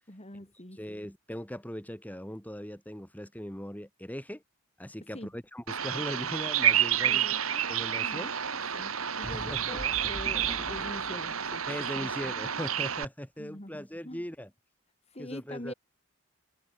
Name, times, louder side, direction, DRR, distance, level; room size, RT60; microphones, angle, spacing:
voice 1, 0.1-0.8 5.1-5.3 7.0-7.7 8.0-8.3 8.7-11.6 11.9-12.1 12.4-12.5 13.4-14.2 15.1-15.7, left 1 dB, 30° left, 4.1 m, -44 dB
voice 2, 0.7-4.4 4.8-7.3 7.7-8.3 9.2-9.8 11.7-14.5 15.2-15.7, equal, 5° left, 4.3 m, -39 dB
Bird vocalization bird call bird song, 5.7-13.0, right 9 dB, 80° right, 2.9 m, -30 dB
sound 1, 9.2-12.8, equal, 10° right, 5.2 m, -44 dB
open air
head